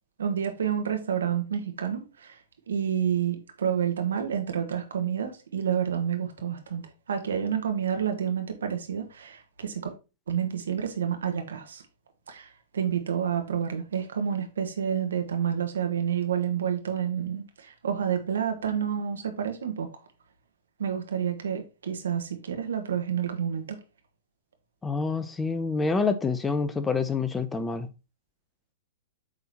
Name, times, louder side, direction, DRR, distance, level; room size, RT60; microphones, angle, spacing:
voice 1, 0.2-2.4 2.7-6.8 7.1-9.9 10.3-11.8 12.3-12.5 12.7-19.9 20.8-23.8, right 8 dB, 70° right, 1.5 m, -29 dB
voice 2, 24.8-27.9, left 4 dB, 15° left, 0.8 m, -27 dB
8.0 x 3.8 x 4.2 m
figure-of-eight pair, 105°, 0 cm